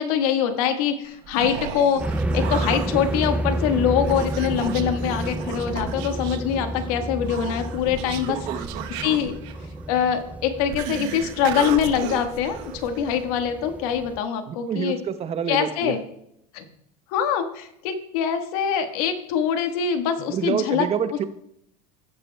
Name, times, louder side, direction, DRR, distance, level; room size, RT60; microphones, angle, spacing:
voice 1, 0.0-2.0 2.3-8.4 9.0-9.3 9.9-15.0 15.5-16.0 16.5-16.7 17.1-20.9, left 8 dB, 70° left, 7 dB, 1.4 m, -24 dB
Human voice, 1.0-13.3, right 10 dB, 60° right, 1.0 m, -36 dB
sound 1, 2.0-14.2, right 1 dB, 5° right, 0.4 m, -30 dB
voice 2, 8.2-8.7 14.5-16.0 20.2-21.3, right 8 dB, 30° right, 11 dB, 0.8 m, -27 dB
17.0 x 7.7 x 2.2 m, 0.75 s
hypercardioid pair, 95°, 20 cm